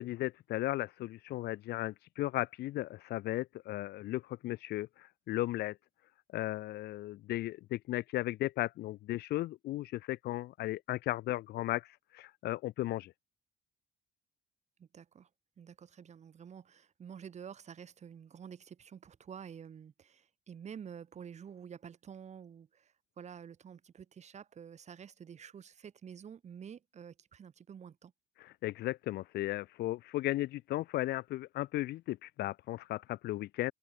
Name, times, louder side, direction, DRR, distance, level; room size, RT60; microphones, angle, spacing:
voice 1, 0.0-5.8 6.3-13.1 28.4-33.7, left 16 dB, 75° left, 1.3 m, -36 dB
voice 2, 14.8-15.3 15.6-28.1, right 7 dB, 40° right, 3.8 m, -49 dB
cardioid pair, 110°, 17 cm